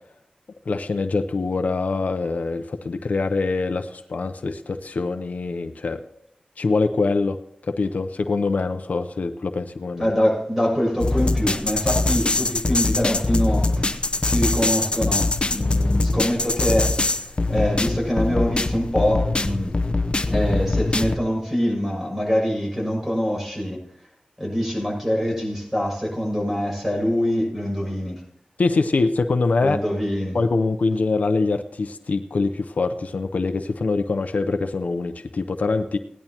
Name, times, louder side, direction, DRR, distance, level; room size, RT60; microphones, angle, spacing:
voice 1, 0.7-6.0 6.6-7.4 7.7-10.1 28.6-29.8 30.3-36.0, left 3 dB, 75° left, 9 dB, 0.7 m, -24 dB
voice 2, 10.0-16.9 17.2-19.8 20.3-23.8 24.4-28.2 29.6-30.4, equal, 10° right, -3 dB, 6.4 m, -24 dB
sound 1, 11.0-21.2, left 2 dB, 40° left, 0.7 m, -23 dB
18.0 x 11.0 x 2.9 m, 0.71 s
wide cardioid pair, 80°, 3 cm